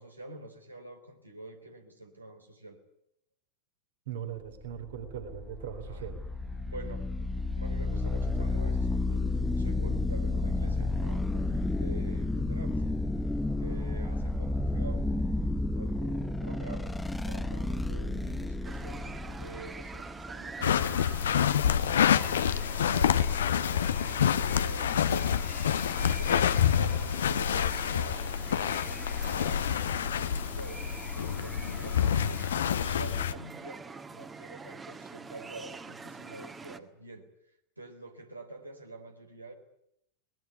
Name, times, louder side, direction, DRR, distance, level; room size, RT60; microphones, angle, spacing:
voice 1, 0.0-2.8 5.8-6.1 6.6-7.3 7.5-12.8 13.6-15.5 15.7-16.9 17.3-21.1 21.5-25.4 26.0-32.4 32.9-37.3 37.8-39.5, right 2 dB, 85° right, 3 dB, 3.8 m, -46 dB
voice 2, 4.1-6.2, right 9 dB, 60° right, 7 dB, 3.6 m, -39 dB
sound 1, 4.6-22.0, left 2 dB, 5° left, 1.1 m, -31 dB
sound 2, 18.6-36.8, right 4 dB, 15° right, 1.9 m, -45 dB
sound 3, 20.6-33.3, left 9 dB, 65° left, 1.0 m, -27 dB
24.0 x 20.0 x 9.7 m, 0.75 s
figure-of-eight pair, 90°, 0 cm